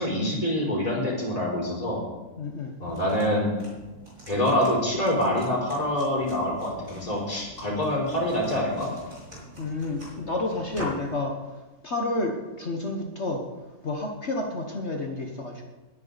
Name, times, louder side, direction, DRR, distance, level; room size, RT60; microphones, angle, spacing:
voice 1, 0.0-2.0 2.8-3.5 4.3-8.9, left 1 dB, 20° left, -4 dB, 4.9 m, -26 dB
voice 2, 2.4-2.7 9.6-13.4 13.8-15.6, left 2 dB, 45° left, 1 dB, 1.5 m, -30 dB
sound 1, 2.8-11.2, equal, 30° right, 5.0 m, -43 dB
20.0 x 9.6 x 4.1 m, 1.2 s
omnidirectional pair, 1.7 m